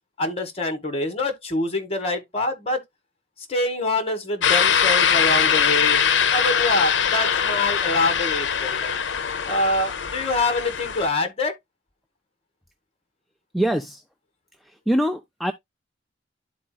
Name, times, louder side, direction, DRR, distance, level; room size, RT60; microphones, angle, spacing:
voice 1, 0.2-2.8 3.5-8.9 9.5-11.5, left 2 dB, 35° left, 1.4 m, -25 dB
sound 1, 4.4-11.1, left 7 dB, 75° left, 0.6 m, -22 dB
voice 2, 13.5-14.0 14.6-15.5, right 1 dB, ahead, 0.4 m, -24 dB
12.0 x 4.1 x 2.2 m
head